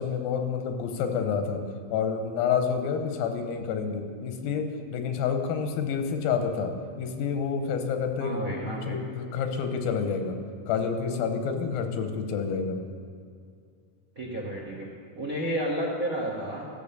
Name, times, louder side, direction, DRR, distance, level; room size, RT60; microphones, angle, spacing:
voice 1, 0.0-1.6 1.9-6.7 7.0-10.4 10.7-12.8, left 6 dB, 85° left, 6 dB, 2.8 m, -29 dB
voice 2, 8.2-9.0 14.1-14.9 15.1-16.7, right 1 dB, 65° right, -2 dB, 0.8 m, -31 dB
14.0 x 7.1 x 6.8 m, 2.2 s
omnidirectional pair, 4.2 m